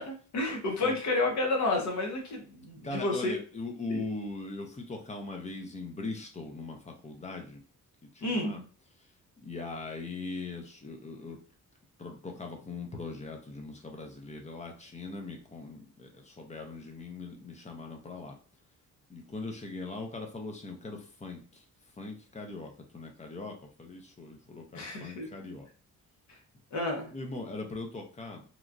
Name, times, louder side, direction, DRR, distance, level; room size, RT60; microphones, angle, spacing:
voice 1, 0.0-3.3 3.9-4.0 8.2-8.6 24.7-25.3 26.3-26.4 26.7-27.1, left 2 dB, 55° left, 1 dB, 0.9 m, -30 dB
voice 2, 2.8-7.6 8.0-8.6 9.0-11.4 12.0-18.4 19.1-21.6 22.0-25.7 27.1-28.4, left 3 dB, 20° left, 3 dB, 0.5 m, -40 dB
3.0 x 2.3 x 2.5 m, 0.39 s
wide cardioid pair, 155°, 34 cm